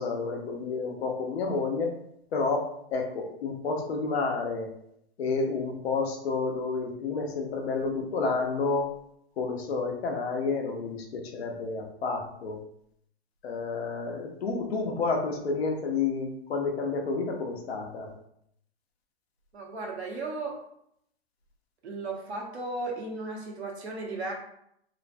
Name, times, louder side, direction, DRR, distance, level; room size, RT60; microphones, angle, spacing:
voice 1, 0.0-1.9 2.3-4.7 5.2-9.0 9.4-12.6 13.4-18.1, left 4 dB, 70° left, 2 dB, 0.7 m, -30 dB
voice 2, 19.5-20.6 21.8-24.3, right 3 dB, 85° right, -1 dB, 0.9 m, -35 dB
3.1 x 2.1 x 2.5 m, 0.73 s
hypercardioid pair, 120°, 32 cm